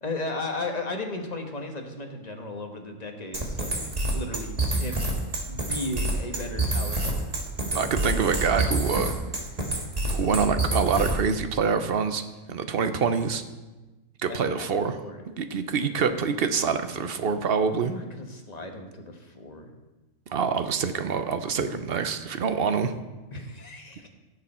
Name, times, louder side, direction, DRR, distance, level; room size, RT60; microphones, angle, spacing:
voice 1, 0.0-3.8 4.1-5.0 5.5-7.4 7.7-7.9 14.3-15.2 17.8-19.7 23.3-24.1, left 2 dB, 30° left, 4 dB, 1.2 m, -35 dB
sound 1, 3.3-11.3, right 2 dB, 30° right, 1.5 m, -27 dB
voice 2, 7.7-9.1 10.1-12.2 12.5-13.4 14.2-15.0 15.4-17.9 20.3-22.9, right 6 dB, 55° right, 9 dB, 0.8 m, -26 dB
16.5 x 6.8 x 4.3 m, 1.2 s
omnidirectional pair, 1.5 m